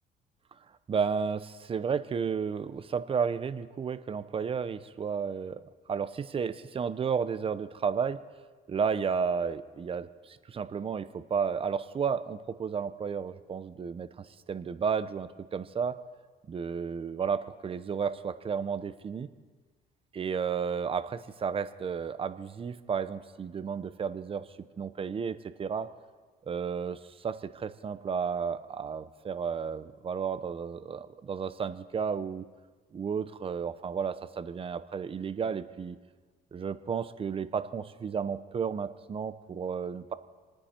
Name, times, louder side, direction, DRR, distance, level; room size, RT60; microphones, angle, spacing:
voice 1, 0.9-5.6 5.9-8.2 8.7-16.0 16.5-19.3 20.1-24.5 24.8-25.9 26.4-32.5 32.9-36.0 36.5-40.1, right 6 dB, 35° right, 12 dB, 0.8 m, -32 dB
28.5 x 9.6 x 4.4 m, 1.4 s
cardioid pair, 110°, 17 cm